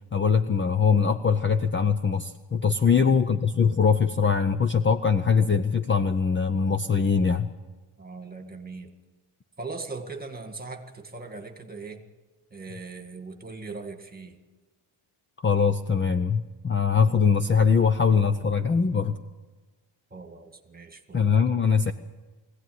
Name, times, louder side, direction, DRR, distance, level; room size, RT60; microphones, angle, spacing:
voice 1, 0.1-7.5 15.4-19.2 21.1-21.9, left 6 dB, 25° left, 10 dB, 0.6 m, -22 dB
voice 2, 2.8-3.2 8.0-8.9 9.6-12.0 12.5-14.4 20.1-21.9, right 3 dB, 20° right, 5 dB, 1.9 m, -40 dB
22.5 x 16.5 x 9.4 m, 1.2 s
cardioid pair, 155°, 49 cm